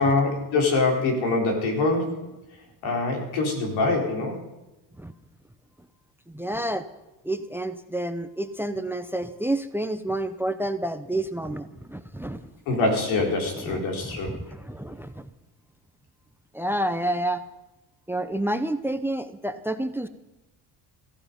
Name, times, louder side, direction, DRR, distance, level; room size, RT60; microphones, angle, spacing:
voice 1, 0.0-2.2 2.8-4.4 12.7-14.3, left 3 dB, 85° left, 1 dB, 4.3 m, -24 dB
voice 2, 6.3-6.9 7.2-12.4 13.6-15.2 16.5-17.4 18.1-20.1, right 1 dB, 5° right, 12 dB, 0.8 m, -29 dB
16.0 x 15.0 x 5.4 m, 1.0 s
supercardioid pair, 90°, 46 cm